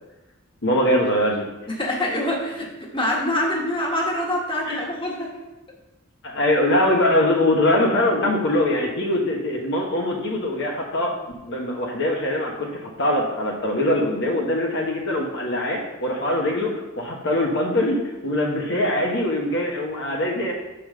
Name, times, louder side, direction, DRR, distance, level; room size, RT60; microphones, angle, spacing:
voice 1, 0.6-1.4 4.7-4.8 6.2-11.1 11.4-20.5, left 1 dB, 60° left, -1 dB, 1.2 m, -22 dB
voice 2, 1.7-5.4, left 1 dB, 25° left, -2 dB, 1.6 m, -25 dB
5.6 x 5.2 x 6.6 m, 1.0 s
head